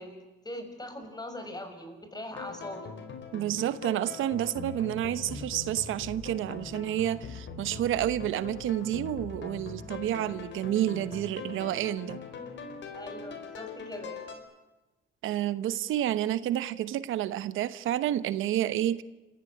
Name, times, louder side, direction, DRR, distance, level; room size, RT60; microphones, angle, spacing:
voice 1, 0.0-2.9 12.9-14.2, left 1 dB, 20° left, 7 dB, 6.4 m, -41 dB
sound 1, 2.3-14.4, left 5 dB, 65° left, 4.6 m, -42 dB
voice 2, 3.3-12.2 15.2-19.0, right 12 dB, 85° right, 15 dB, 1.0 m, -29 dB
28.0 x 15.5 x 10.0 m, 1.1 s
cardioid pair, 90°, 20 cm